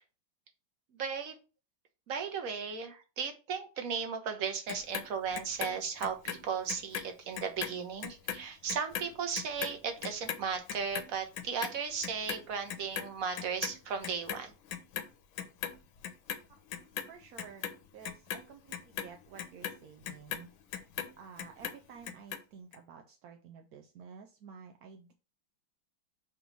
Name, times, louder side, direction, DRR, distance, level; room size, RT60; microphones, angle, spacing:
voice 1, 0.9-1.4 2.1-14.5, right 6 dB, 50° right, 6 dB, 1.3 m, -36 dB
Clock, 4.7-7.1 7.4-13.8 14.0-15.1 15.4-16.4 16.7-21.1 21.4-22.4 22.7-22.8, left 9 dB, 85° left, 1.5 m, -39 dB
voice 2, 17.1-20.5 21.2-25.1, right 6 dB, 70° right, 4 dB, 1.0 m, -52 dB
6.1 x 3.0 x 5.2 m, 0.33 s
omnidirectional pair, 2.1 m